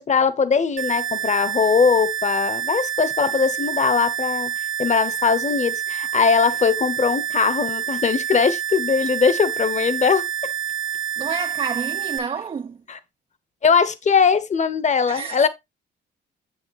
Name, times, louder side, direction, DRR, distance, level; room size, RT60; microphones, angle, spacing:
voice 1, 0.0-4.5 4.8-10.2 12.9-13.0 13.6-15.5, left 5 dB, 35° left, 1.0 m, -20 dB
sound 1, 0.8-12.2, right 9 dB, 75° right, 0.9 m, -27 dB
voice 2, 11.2-12.8 15.1-15.5, right 6 dB, 30° right, 0.4 m, -29 dB
7.2 x 6.6 x 3.1 m
cardioid pair, 90°, 20 cm